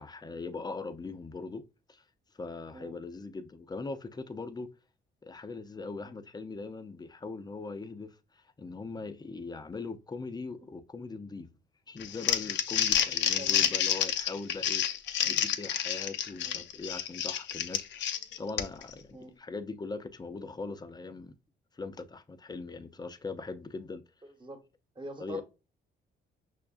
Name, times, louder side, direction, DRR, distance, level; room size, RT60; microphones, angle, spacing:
voice 1, 0.0-1.6 1.9-2.0 2.4-4.7 5.2-11.5 11.9-14.8 15.3-18.1 18.4-21.3 21.7-24.0 25.2-25.4, left 3 dB, 20° left, 0.5 m, -40 dB
Crumpling crinkling, 12.0-18.9, left 9 dB, 65° left, 0.5 m, -29 dB
voice 2, 13.3-13.6 15.2-15.4 16.4-16.6 19.1-19.3 24.2-24.6 24.9-25.4, right 1 dB, 25° right, 1.2 m, -45 dB
5.6 x 2.4 x 2.4 m
cardioid pair, 90°, 20 cm